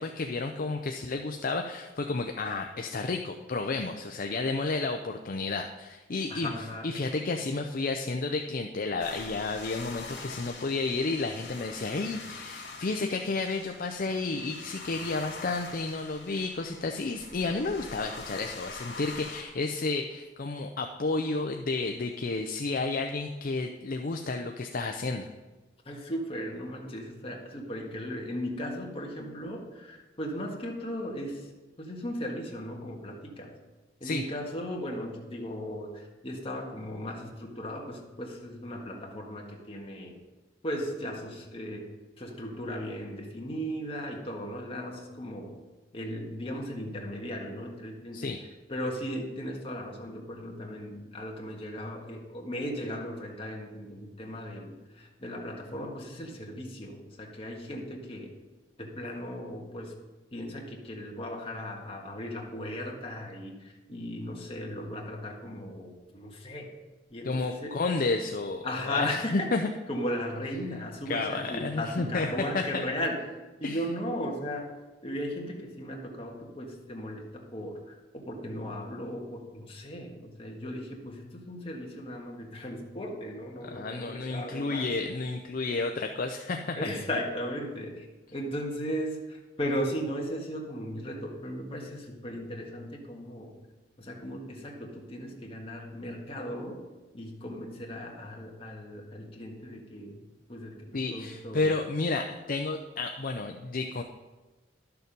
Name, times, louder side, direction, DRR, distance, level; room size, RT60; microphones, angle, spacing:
voice 1, 0.0-6.5 6.8-25.3 34.0-34.2 48.1-48.4 67.2-69.7 71.1-72.3 72.5-72.8 73.6-73.8 83.6-86.8 100.9-104.0, left 3 dB, 50° left, 4 dB, 0.5 m, -31 dB
voice 2, 6.3-6.9 25.8-33.5 34.0-40.2 40.6-41.9 42.2-45.5 45.9-48.3 48.7-58.4 58.8-59.9 60.3-66.7 67.1-67.7 68.6-69.5 69.9-73.2 73.6-74.7 75.0-84.9 86.8-88.1 88.3-93.5 94.0-96.8 97.1-100.2 100.5-101.7, equal, 30° left, -1 dB, 1.7 m, -37 dB
sound 1, 9.0-19.4, left 4 dB, 75° left, 2.1 m, -44 dB
11.5 x 6.8 x 5.3 m, 1.2 s
head